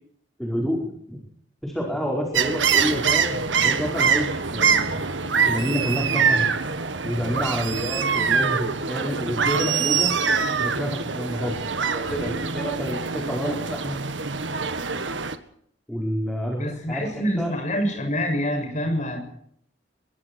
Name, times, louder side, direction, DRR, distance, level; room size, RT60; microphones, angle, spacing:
voice 1, 0.4-1.2 1.6-4.9 5.5-6.5 7.0-10.1 10.6-14.0 15.9-17.0 17.4-17.5, equal, ahead, -1 dB, 5.1 m, -28 dB
sound 1, 2.3-15.4, right 6 dB, 85° right, 1.8 m, -24 dB
voice 2, 16.6-19.2, equal, 40° left, 3 dB, 7.4 m, -26 dB
26.0 x 23.0 x 4.7 m, 0.67 s
head